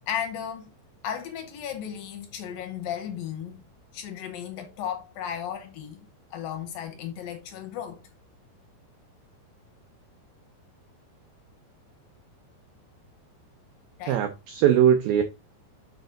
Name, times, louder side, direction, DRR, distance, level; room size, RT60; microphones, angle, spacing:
voice 1, 0.1-0.7 1.0-3.6 3.9-6.1 6.3-8.0 14.0-14.2, left 9 dB, 75° left, 2.2 m, -35 dB
voice 2, 14.1-15.2, right 9 dB, 85° right, 2.1 m, -20 dB
6.7 x 5.2 x 3.8 m
omnidirectional pair, 5.2 m